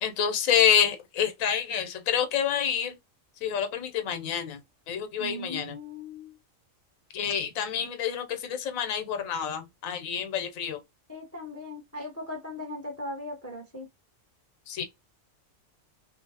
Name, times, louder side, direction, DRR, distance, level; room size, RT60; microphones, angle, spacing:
voice 1, 0.0-3.0 3.4-4.6 4.9-5.8 7.1-10.8 14.7-14.8, left 8 dB, 80° left, 1.0 m, -27 dB
voice 2, 5.1-6.3 11.1-13.9, left 1 dB, 15° left, 0.5 m, -38 dB
2.7 x 2.5 x 2.7 m
omnidirectional pair, 1.4 m